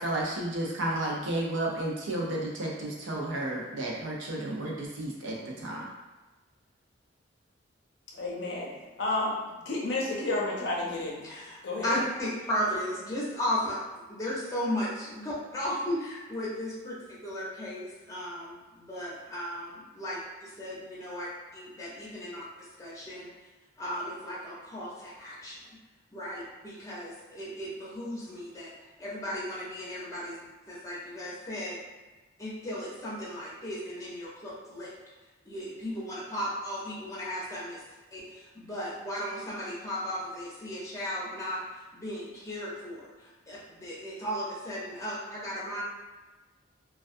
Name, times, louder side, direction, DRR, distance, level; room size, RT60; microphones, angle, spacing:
voice 1, 0.0-5.8, right 1 dB, 75° right, -3 dB, 0.5 m, -32 dB
voice 2, 8.1-8.7 9.0-9.3 9.7-11.2 11.6-12.0, left 2 dB, 65° left, -3 dB, 0.5 m, -30 dB
voice 3, 11.2-13.8 14.1-22.4 22.8-23.3 23.8-25.6 26.1-28.7 29.0-31.8 32.4-34.9 35.4-37.8 38.1-45.8, equal, 15° left, -7 dB, 0.6 m, -35 dB
2.3 x 2.2 x 2.5 m, 1.2 s
head